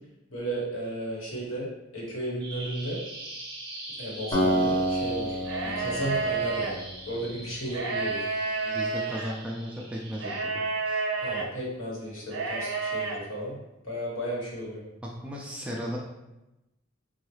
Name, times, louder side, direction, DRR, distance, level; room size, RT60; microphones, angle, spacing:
voice 1, 0.3-1.7 1.9-3.0 4.0-8.3 11.2-14.8, right 1 dB, 70° left, -4 dB, 1.2 m, -34 dB
Bird vocalization bird call bird song, 2.4-10.4, right 2 dB, 25° right, 0.7 m, -43 dB
Acoustic guitar, 4.3-7.5, right 1 dB, 20° left, 0.9 m, -29 dB
sound 1, 5.4-6.7 7.7-9.3 10.2-11.5 12.3-13.2, right 4 dB, 70° right, 0.6 m, -30 dB
voice 2, 8.6-11.0 15.0-16.0, equal, 5° right, -3 dB, 0.3 m, -36 dB
3.8 x 2.3 x 3.1 m, 0.96 s
head